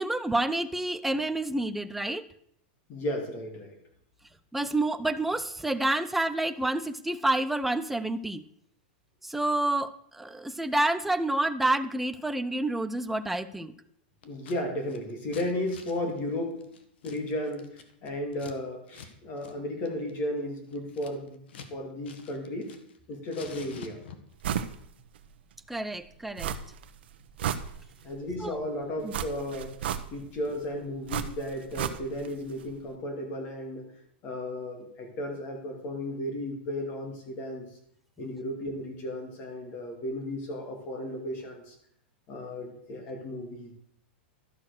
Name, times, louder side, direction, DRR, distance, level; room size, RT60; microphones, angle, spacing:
voice 1, 0.0-2.3 4.5-8.4 9.2-13.7 25.7-26.5 28.4-28.6 29.0-29.1, right 2 dB, 5° right, 10 dB, 0.5 m, -28 dB
voice 2, 2.9-3.8 10.8-11.0 14.2-16.6 17.0-22.7 23.1-24.0 28.0-29.8 30.1-33.8 34.2-37.7 38.2-41.8 42.3-43.8, left 1 dB, 30° left, 4 dB, 2.4 m, -34 dB
Scissors, 14.2-14.6 14.8-18.6 18.9-19.1 19.4-19.5 19.9-21.7 22.0-23.0 23.3-24.4, left 6 dB, 80° left, 1.5 m, -48 dB
sound 1, 24.4-24.8 25.1-25.2 26.4-26.9 27.2-28.2 29.1-30.4 31.1-32.3 32.6-32.7, right 9 dB, 75° right, 0.9 m, -33 dB
12.5 x 6.1 x 6.5 m, 0.70 s
supercardioid pair, 160°, 6 cm